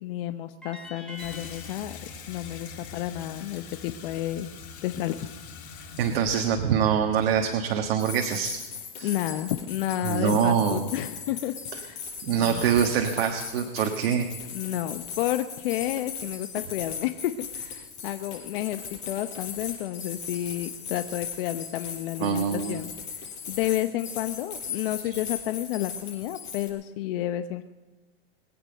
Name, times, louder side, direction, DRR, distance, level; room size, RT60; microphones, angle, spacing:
voice 1, 0.0-2.0 2.3-4.5 4.8-5.3 5.7-5.9 9.0-12.0 12.3-12.6 14.5-22.9 23.5-27.7, left 13 dB, 60° left, 9 dB, 0.8 m, -31 dB
sound 1, 0.6-3.8, equal, 5° left, 3.0 m, -47 dB
Water tap faucet / Sink (filling or washing), 1.1-8.2, left 5 dB, 80° left, 3.4 m, -44 dB
voice 2, 6.0-8.6 8.9-9.1 10.0-10.9 12.2-14.3 22.2-22.8, right 8 dB, 65° right, 4 dB, 1.5 m, -24 dB
sound 2, 8.0-26.7, left 6 dB, 30° left, 5.6 m, -38 dB
22.5 x 8.9 x 6.6 m, 1.3 s
supercardioid pair, 140°, 32 cm